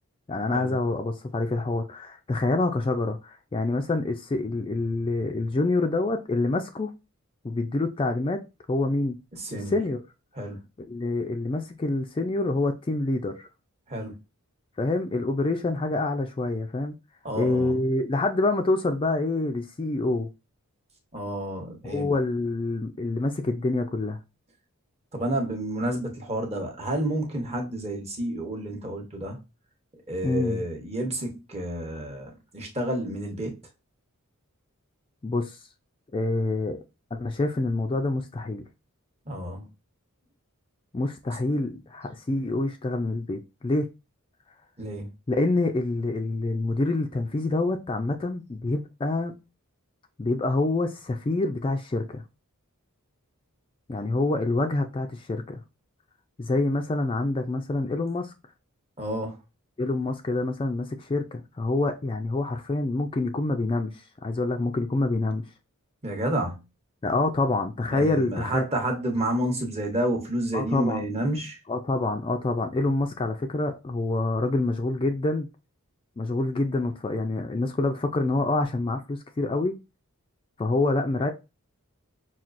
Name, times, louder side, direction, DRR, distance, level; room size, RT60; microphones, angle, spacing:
voice 1, 0.3-3.2 3.5-6.9 7.4-8.4 8.7-9.2 9.7-10.0 10.8-13.5 14.8-17.0 17.3-20.3 21.8-24.2 30.2-30.6 35.2-35.6 36.1-36.8 37.1-38.6 40.9-43.9 45.3-49.3 50.2-52.2 53.9-55.6 56.4-58.3 59.8-65.4 67.0-68.7 70.5-71.0 71.7-75.5 76.2-79.7 80.6-81.3, left 2 dB, 25° left, 0.4 m, -26 dB
voice 2, 9.3-9.8 10.4-10.6 13.9-14.1 17.2-17.8 21.1-22.1 25.1-29.4 30.1-33.5 39.3-39.7 44.8-45.1 59.0-59.4 66.0-66.6 67.9-71.6, right 1 dB, 30° right, 0.9 m, -30 dB
5.7 x 2.3 x 2.5 m
head